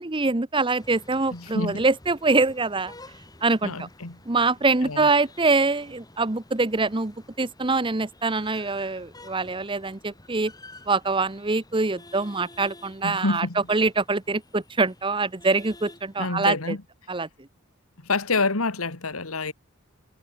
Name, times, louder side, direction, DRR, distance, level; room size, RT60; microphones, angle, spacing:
voice 1, 0.0-2.9 3.4-3.9 4.3-10.5 10.9-16.8 17.1-17.3, right 3 dB, 25° right, 0.9 m, -24 dB
sound 1, 0.8-16.6, left 2 dB, 20° left, 7.3 m, -51 dB
voice 2, 1.3-1.8 3.6-4.2 4.8-5.1 13.0-13.6 16.2-16.8 18.0-19.5, left 3 dB, 90° left, 2.2 m, -27 dB
head